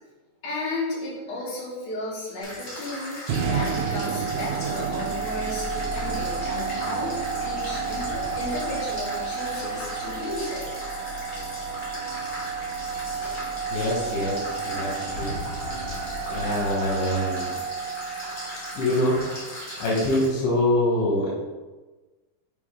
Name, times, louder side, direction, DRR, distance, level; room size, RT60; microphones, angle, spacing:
voice 1, 0.4-10.6, left 2 dB, 60° left, -7 dB, 3.3 m, -34 dB
sound 1, 2.4-20.3, equal, 35° left, 2.1 m, -38 dB
sound 2, 3.3-19.4, right 5 dB, 80° right, 1.7 m, -31 dB
voice 2, 13.1-15.3 16.3-17.6 18.7-19.2 19.8-21.3, left 1 dB, 85° left, -6 dB, 3.2 m, -25 dB
7.1 x 4.8 x 3.6 m, 1.3 s
omnidirectional pair, 3.9 m